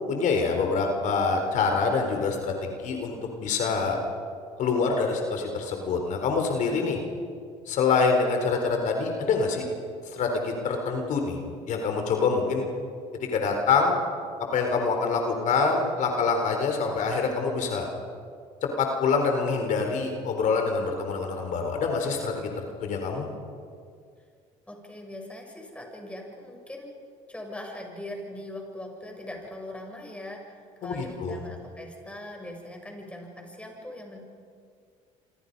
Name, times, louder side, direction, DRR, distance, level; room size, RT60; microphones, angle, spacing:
voice 1, 0.1-4.0 4.6-7.0 7.7-9.7 10.1-11.4 11.7-12.7 13.1-14.0 14.5-17.9 18.6-23.3 30.8-31.4, left 4 dB, 60° left, 3 dB, 4.0 m, -26 dB
voice 2, 24.7-26.9 27.3-34.2, left 1 dB, 10° left, 1 dB, 7.5 m, -40 dB
27.0 x 26.0 x 5.5 m, 2.2 s
supercardioid pair, 80°, 15 cm